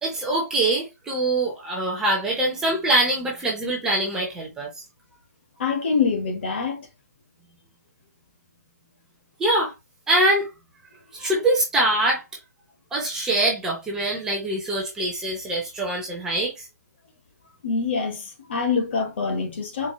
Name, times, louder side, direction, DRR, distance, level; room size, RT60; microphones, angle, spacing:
voice 1, 0.0-4.7 9.4-9.7 10.1-10.5 11.1-12.2 12.9-16.7, right 1 dB, 5° right, 0.8 m, -23 dB
voice 2, 5.6-6.9 11.2-11.3 17.6-19.9, left 5 dB, 40° left, 1.2 m, -25 dB
4.5 x 2.4 x 2.7 m
hypercardioid pair, 165°, 9 cm